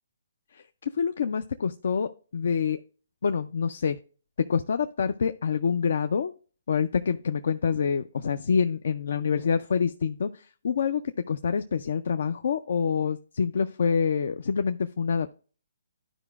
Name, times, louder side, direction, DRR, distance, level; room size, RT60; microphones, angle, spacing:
voice 1, 0.5-2.8 3.2-4.0 4.5-6.3 6.7-15.4, left 6 dB, 60° left, 9 dB, 0.5 m, -27 dB
12.5 x 5.0 x 2.3 m, 0.38 s
figure-of-eight pair, 140°, 0 cm